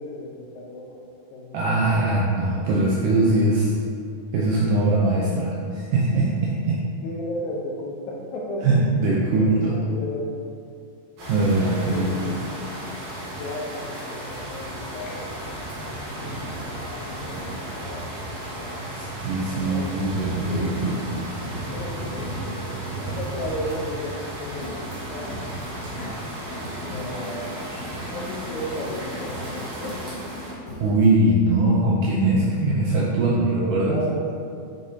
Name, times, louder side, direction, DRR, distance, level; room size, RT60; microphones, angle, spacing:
voice 1, 0.0-1.7 7.0-9.0 9.4-10.4 11.9-12.3 13.4-15.6 16.2-18.3 19.6-20.0 20.5-20.9 21.7-25.3 26.9-27.7 28.1-30.0 33.6-34.5, left 1 dB, 75° left, -2 dB, 2.4 m, -34 dB
voice 2, 1.5-3.7 4.3-6.8 8.6-9.7 11.3-12.4 19.0-21.0 30.8-34.0, right 2 dB, 85° right, -5 dB, 1.8 m, -21 dB
sound 1, 11.2-30.5, right 1 dB, 65° right, 2.8 m, -34 dB
sound 2, 24.3-31.1, left 1 dB, 55° left, 2.8 m, -39 dB
9.3 x 4.6 x 2.8 m, 2.4 s
omnidirectional pair, 4.5 m